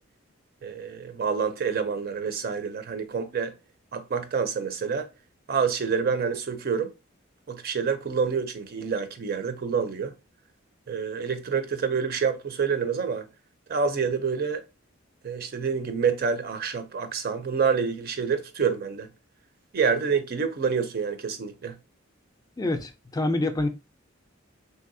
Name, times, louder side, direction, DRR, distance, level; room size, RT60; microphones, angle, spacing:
voice 1, 0.6-3.5 3.9-5.1 5.5-6.9 7.5-10.1 10.9-13.3 13.7-14.6 15.2-19.1 19.7-21.8, right 6 dB, 50° right, 0.5 m, -27 dB
voice 2, 22.6-23.7, left 2 dB, 20° left, 0.3 m, -26 dB
3.2 x 2.7 x 2.6 m
head